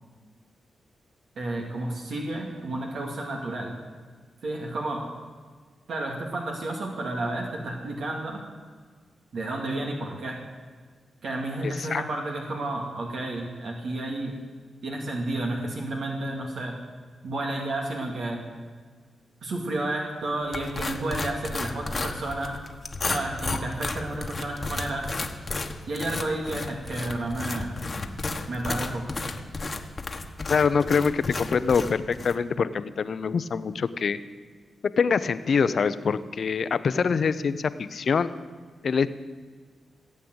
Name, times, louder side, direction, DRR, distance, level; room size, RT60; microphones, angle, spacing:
voice 1, 1.4-3.7 4.4-5.0 5.9-8.4 9.3-10.4 11.2-14.4 14.8-16.8 17.2-18.4 19.4-22.6 23.0-25.1 25.9-27.8 28.5-29.0, right 2 dB, 75° right, 0 dB, 2.3 m, -31 dB
voice 2, 11.6-12.0 30.5-34.2 35.0-38.3 38.8-39.1, left 5 dB, 60° left, 14 dB, 0.7 m, -24 dB
sound 1, 20.5-32.4, left 3 dB, 40° left, 1.2 m, -33 dB
17.0 x 8.6 x 7.9 m, 1.5 s
cardioid pair, 75°, 0 cm